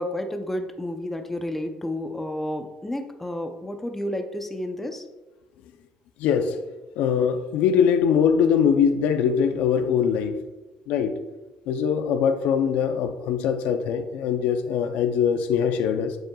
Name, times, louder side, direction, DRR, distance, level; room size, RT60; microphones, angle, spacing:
voice 1, 0.0-5.1, left 1 dB, 10° left, 6 dB, 0.6 m, -31 dB
voice 2, 6.2-6.6 7.0-10.4 10.9-11.2 11.7-16.2, left 7 dB, 80° left, 8 dB, 0.5 m, -22 dB
7.6 x 7.4 x 2.3 m, 1.1 s
cardioid pair, 135°, 3 cm